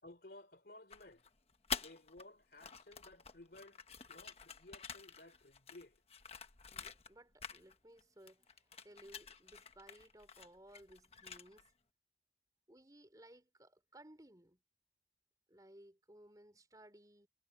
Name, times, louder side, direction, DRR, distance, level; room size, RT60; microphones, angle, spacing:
voice 1, 0.0-1.3 1.7-3.8 4.1-6.0, left 2 dB, 55° left, 3.5 m, -57 dB
sound 1, 0.9-2.2 2.5-7.1 7.4-8.0 8.3-11.7, left 6 dB, 35° left, 1.3 m, -48 dB
voice 2, 6.7-11.7 12.7-14.6 15.5-17.3, right 1 dB, 20° right, 4.0 m, -60 dB
head